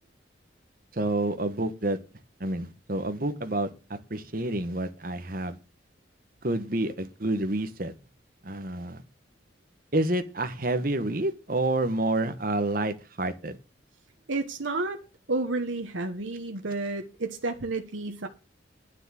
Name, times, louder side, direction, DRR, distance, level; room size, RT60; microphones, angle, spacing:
voice 1, 1.0-2.0 2.4-5.6 6.4-7.9 8.4-9.0 9.9-13.6, right 2 dB, 45° right, 1.2 m, -28 dB
voice 2, 14.3-15.0 15.3-18.3, right 2 dB, 80° right, 1.2 m, -31 dB
9.9 x 6.6 x 7.5 m
head